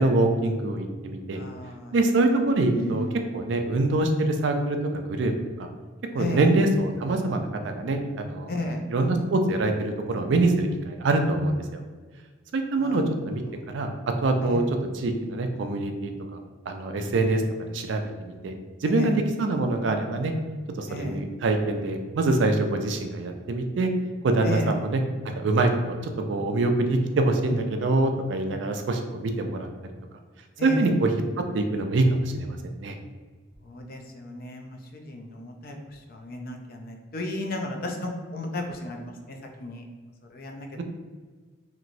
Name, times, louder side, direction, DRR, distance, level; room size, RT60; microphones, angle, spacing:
voice 1, 0.0-1.4 1.9-3.1 3.3-4.8 5.1-5.3 5.6-5.7 6.1-8.5 8.9-11.8 12.5-13.4 13.7-13.9 14.2-14.6 14.9-16.1 16.7-17.4 17.7-18.5 18.8-20.3 20.8-23.9 24.2-25.0 25.4-29.7 30.6-31.1 31.5-33.0, right 2 dB, 65° right, 5 dB, 0.4 m, -24 dB
voice 2, 1.3-1.9 2.7-3.2 6.1-6.5 8.5-8.8 12.8-13.4 14.4-14.6 18.8-19.1 20.9-21.2 24.4-24.7 30.6-30.9 33.6-39.8 40.3-40.8, left 1 dB, 50° left, 3 dB, 0.4 m, -34 dB
3.0 x 2.9 x 2.6 m, 1.4 s
head